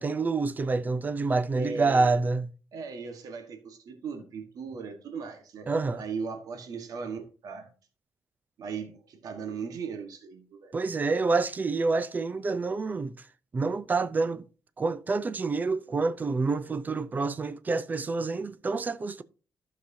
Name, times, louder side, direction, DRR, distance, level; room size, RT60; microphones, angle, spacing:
voice 1, 0.0-2.5 5.7-6.0 10.7-13.2 13.5-14.4 14.8-19.2, right 3 dB, 25° right, 0.6 m, -27 dB
voice 2, 1.5-2.1 2.7-5.7 6.0-7.7 8.6-10.7, right 5 dB, 70° right, 1.4 m, -38 dB
14.0 x 6.0 x 2.8 m
wide cardioid pair, 155°, 7 cm